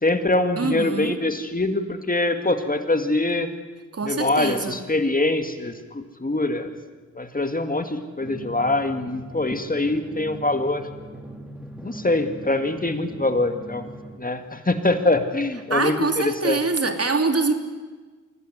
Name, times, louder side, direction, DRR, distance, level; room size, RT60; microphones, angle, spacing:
voice 1, 0.0-3.5 4.0-6.7 7.2-10.8 11.8-13.9 14.2-16.6, left 2 dB, 25° left, 8 dB, 2.3 m, -24 dB
voice 2, 0.6-1.2 3.9-4.8 15.7-17.5, right 3 dB, 50° right, 7 dB, 2.9 m, -24 dB
Drum, 8.2-14.2, right 1 dB, 5° right, 2.8 m, -40 dB
24.5 x 17.0 x 9.8 m, 1.4 s
cardioid pair, 60°, 31 cm